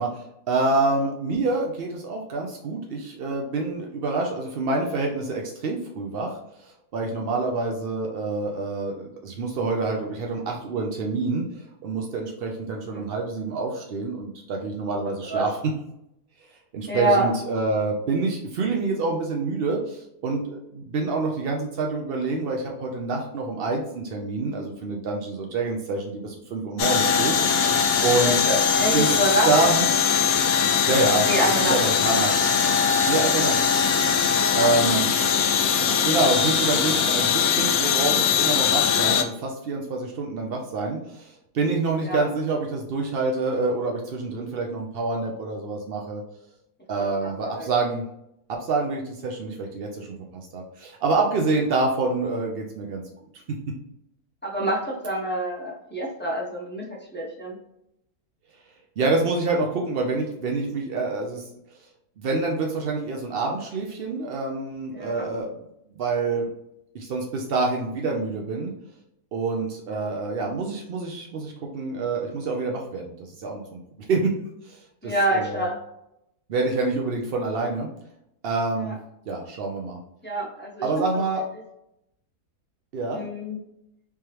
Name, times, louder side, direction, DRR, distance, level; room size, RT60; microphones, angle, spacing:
voice 1, 0.0-6.4 6.6-11.5 11.8-15.6 16.7-27.8 28.0-28.5 28.9-29.1 29.5-29.9 30.9-31.3 31.6-32.4 33.1-33.6 34.5-35.0 36.0-46.2 46.9-48.0 48.5-53.0 53.5-53.6 59.0-61.5 62.2-65.5 66.0-66.5 66.9-68.7 69.3-73.8 74.1-74.3 74.6-75.6 76.5-77.9 78.4-79.0 79.3-80.0 80.8-81.5 82.9-83.2, right 3 dB, 75° right, 1 dB, 0.5 m, -27 dB
voice 2, 16.9-17.3 28.2-29.5 31.3-31.8 34.4-35.0 42.0-42.3 47.0-47.1 47.5-47.7 54.4-56.9 57.1-57.6 64.9-65.3 70.0-70.1 75.0-75.8 78.8-78.9 80.2-81.0 83.1-83.6, right 1 dB, 10° left, -4 dB, 0.6 m, -26 dB
sound 1, 26.8-39.2, left 6 dB, 70° left, 1.0 m, -21 dB
3.6 x 3.2 x 2.9 m, 0.81 s
omnidirectional pair, 1.7 m